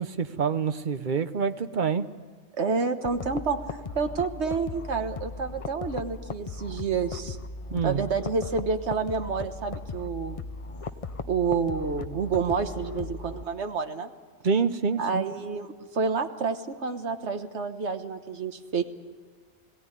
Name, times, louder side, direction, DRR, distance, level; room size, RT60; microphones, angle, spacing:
voice 1, 0.0-2.1 7.7-8.0 14.4-15.3, right 5 dB, 45° right, 10 dB, 0.9 m, -26 dB
voice 2, 2.5-7.4 7.8-10.4 11.3-14.1 15.0-18.8, right 5 dB, 70° right, 7 dB, 1.5 m, -29 dB
sound 1, 3.0-13.4, left 3 dB, 35° left, 0.7 m, -38 dB
21.0 x 17.0 x 9.8 m, 1.5 s
omnidirectional pair, 1.2 m